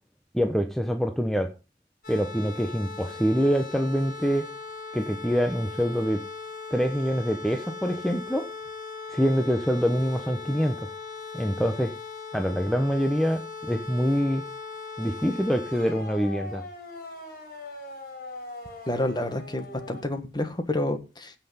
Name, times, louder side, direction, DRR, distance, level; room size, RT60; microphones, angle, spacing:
voice 1, 0.3-1.5 2.1-4.4 4.9-6.2 6.7-8.5 9.1-10.9 11.3-12.0 12.3-14.4 15.0-16.6, equal, ahead, 5 dB, 1.0 m, -25 dB
sound 1, 2.0-20.0, left 4 dB, 55° left, 4.4 m, -39 dB
voice 2, 18.9-21.3, left 1 dB, 25° left, 9 dB, 1.6 m, -29 dB
16.0 x 5.9 x 5.7 m, 0.31 s
head